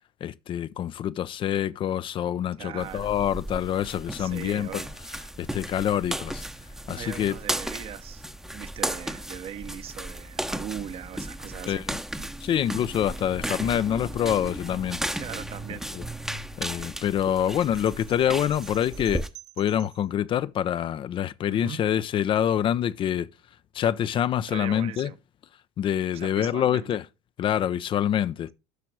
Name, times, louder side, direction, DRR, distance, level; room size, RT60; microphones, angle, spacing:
voice 1, 0.2-4.8 5.4-6.4 6.9-7.3 11.7-12.0 12.4-15.0 15.9-16.0 16.6-19.2 19.6-23.3 23.7-25.1 25.8-27.0 27.4-28.5, left 10 dB, 40° left, 0.5 m, -26 dB
voice 2, 2.6-3.1 4.2-4.9 6.6-8.2 8.5-11.8 12.1-12.3 12.6-12.9 15.1-15.9 16.2-16.4 21.5-21.8 24.5-25.2 26.1-27.0, right 10 dB, 50° right, 0.9 m, -40 dB
sound 1, 2.8-19.3, right 1 dB, 5° right, 0.8 m, -35 dB
sound 2, 17.6-20.1, right 15 dB, 65° right, 1.4 m, -49 dB
8.2 x 5.9 x 6.0 m
hypercardioid pair, 75°, 13 cm